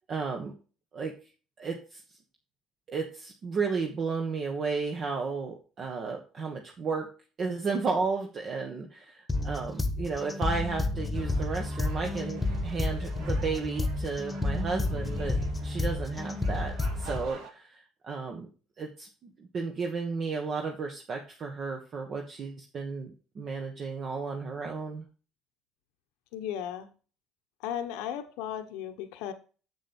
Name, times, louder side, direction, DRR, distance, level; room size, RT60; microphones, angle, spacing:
voice 1, 0.1-0.5 0.9-1.1 1.6-2.0 2.9-7.1 7.4-15.4 15.6-18.5 18.8-23.1 23.3-25.1, right 4 dB, 45° right, 2 dB, 1.5 m, -33 dB
sound 1, 9.3-17.3, left 2 dB, 15° left, 1.3 m, -31 dB
sound 2, 11.1-17.5, right 5 dB, 75° right, 2.4 m, -48 dB
voice 2, 26.3-26.9 27.6-29.3, left 10 dB, 80° left, 8 dB, 1.0 m, -35 dB
7.4 x 7.2 x 4.3 m, 0.37 s
supercardioid pair, 85°, 0 cm